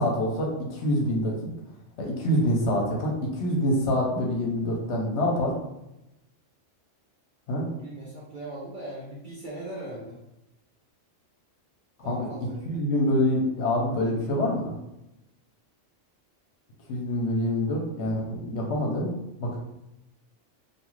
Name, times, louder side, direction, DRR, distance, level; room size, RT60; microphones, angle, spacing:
voice 1, 0.0-1.3 2.0-5.5 7.5-7.6 12.1-12.3 12.7-14.7 16.9-19.1 19.4-19.6, left 1 dB, 65° left, -1 dB, 0.9 m, -26 dB
voice 2, 7.7-10.2 12.0-12.8, right 1 dB, 50° right, -6 dB, 0.6 m, -39 dB
2.4 x 2.3 x 3.0 m, 0.89 s
omnidirectional pair, 1.3 m